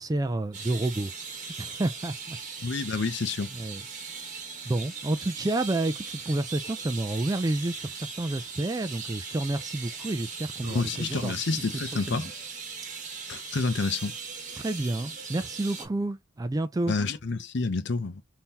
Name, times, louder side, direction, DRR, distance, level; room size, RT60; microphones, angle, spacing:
voice 1, 0.0-2.4 3.5-3.8 4.2-4.3 4.7-11.3 11.9-12.3 14.6-17.0, right 2 dB, 20° right, 0.3 m, -30 dB
sound 1, 0.5-15.9, right 5 dB, 40° right, 1.2 m, -39 dB
voice 2, 2.6-3.5 10.6-12.3 13.3-14.1 16.9-18.2, left 4 dB, 60° left, 0.6 m, -29 dB
3.7 x 2.7 x 2.8 m
head